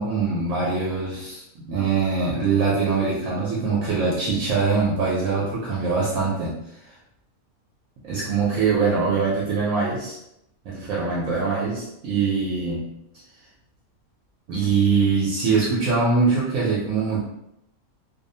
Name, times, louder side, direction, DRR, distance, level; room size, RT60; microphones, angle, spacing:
voice 1, 0.0-6.6 8.0-10.2 10.7-12.9 14.5-17.2, right 4 dB, 75° right, -5 dB, 1.0 m, -23 dB
2.6 x 2.0 x 2.7 m, 0.80 s
omnidirectional pair, 1.5 m